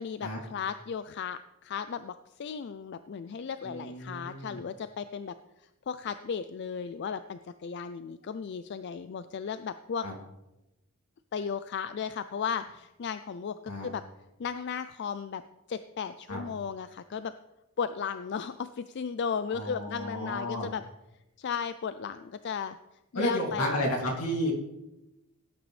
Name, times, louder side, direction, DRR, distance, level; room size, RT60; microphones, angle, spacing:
voice 1, 0.0-5.3 5.6-10.1 11.3-14.0 14.4-15.4 15.7-17.3 17.8-20.8 21.4-22.8 23.1-23.8, left 6 dB, 50° left, 12 dB, 0.4 m, -35 dB
voice 2, 3.6-4.6 10.0-10.1 13.7-13.9 16.3-16.4 19.5-20.7 23.1-24.5, equal, 80° left, 0 dB, 2.7 m, -32 dB
17.0 x 8.9 x 3.3 m, 0.95 s
head